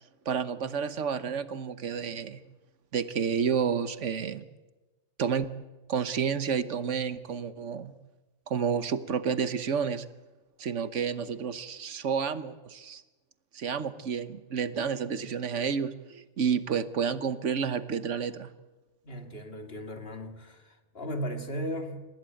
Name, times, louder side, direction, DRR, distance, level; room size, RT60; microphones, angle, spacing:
voice 1, 0.2-2.4 2.9-4.5 5.2-5.5 5.9-7.9 8.5-10.0 10.6-13.0 13.5-18.5, right 6 dB, 85° right, 13 dB, 1.4 m, -30 dB
voice 2, 19.0-22.1, equal, 55° left, 5 dB, 2.7 m, -36 dB
28.5 x 15.5 x 9.1 m, 1.2 s
omnidirectional pair, 1.2 m